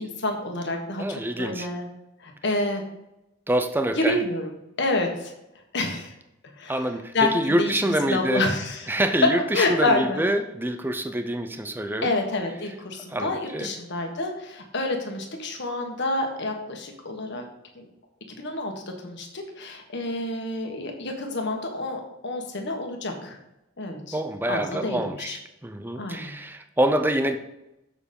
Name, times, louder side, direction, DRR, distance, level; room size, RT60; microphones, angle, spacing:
voice 1, 0.0-1.9 2.2-2.8 4.0-4.5 4.8-5.3 5.7-6.1 6.6-6.7 7.1-7.7 8.1-8.8 9.5-10.2 12.0-17.4 17.7-17.8 18.4-18.7 19.0-23.4 23.8-24.2 24.5-25.4 26.0-26.3, left 2 dB, 60° left, 3 dB, 1.6 m, -28 dB
voice 2, 1.0-1.7 3.5-4.2 6.7-8.5 8.9-12.1 13.1-13.7 24.1-27.4, right 1 dB, 10° right, 7 dB, 0.5 m, -26 dB
7.0 x 6.8 x 5.3 m, 0.90 s
head